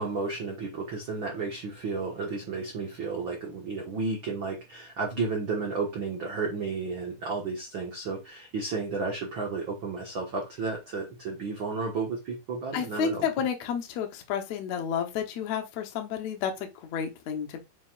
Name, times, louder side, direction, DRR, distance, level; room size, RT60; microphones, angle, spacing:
voice 1, 0.0-13.2, right 4 dB, 60° right, 1.3 m, -32 dB
voice 2, 12.7-17.6, left 7 dB, 70° left, 1.7 m, -31 dB
7.8 x 5.3 x 2.5 m
omnidirectional pair, 4.6 m